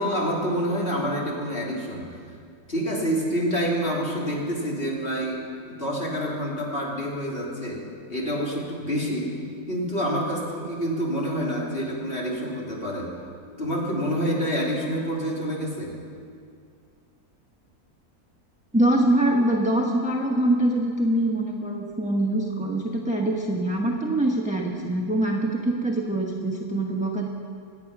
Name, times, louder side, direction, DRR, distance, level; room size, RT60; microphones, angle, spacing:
voice 1, 0.0-2.1 2.7-9.4 9.7-13.1 13.6-15.9, equal, 35° left, -4 dB, 3.4 m, -27 dB
voice 2, 18.7-27.3, right 1 dB, 5° right, -1 dB, 1.1 m, -24 dB
25.0 x 9.4 x 6.0 m, 2.3 s
omnidirectional pair, 1.6 m